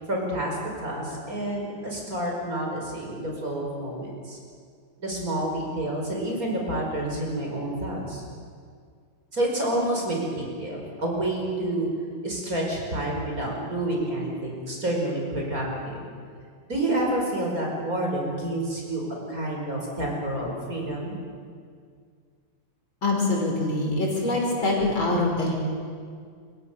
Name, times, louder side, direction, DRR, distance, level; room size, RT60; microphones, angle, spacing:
voice 1, 0.1-4.4 5.0-8.2 9.3-11.9 12.2-16.0 16.7-21.2, right 1 dB, 45° right, -1 dB, 5.7 m, -29 dB
voice 2, 23.0-25.5, left 2 dB, 80° left, -1 dB, 6.1 m, -24 dB
26.5 x 23.0 x 6.9 m, 2.1 s
omnidirectional pair, 2.2 m